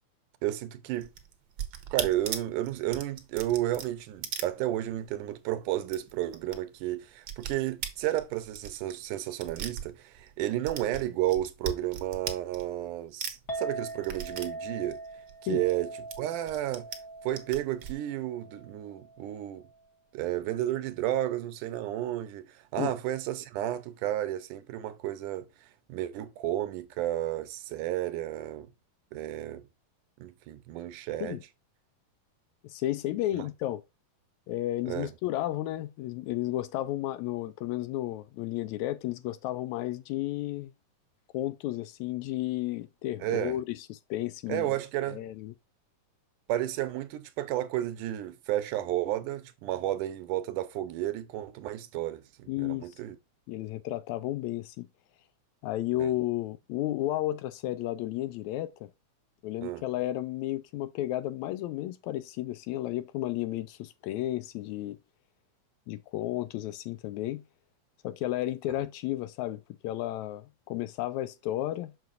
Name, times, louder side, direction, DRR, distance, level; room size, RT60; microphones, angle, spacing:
voice 1, 0.4-1.1 1.9-15.0 15.5-15.9 16.2-16.9 17.2-19.6 20.1-28.7 29.1-29.7 30.2-31.4 33.3-33.4 34.9-35.1 43.2-43.6 44.5-45.2 46.5-53.2 56.0-56.1 59.6-59.8, right 13 dB, 85° right, 2.3 m, -32 dB
sound 1, 1.0-5.2 5.4-5.5 5.8-6.6 6.8-10.3 10.6-12.9 13.2-15.8 16.1-17.0 17.3-17.9, right 8 dB, 65° right, 1.3 m, -38 dB
Chink clink, 13.5-19.8, right 2 dB, 40° left, 1.0 m, -42 dB
voice 2, 32.6-33.8 34.5-40.7 41.3-44.7 45.1-45.5 52.5-52.9 53.5-54.9 55.6-58.9 59.4-65.0 65.9-67.4 68.0-71.9, left 15 dB, 80° left, 1.7 m, -33 dB
6.6 x 6.3 x 2.5 m
omnidirectional pair, 3.5 m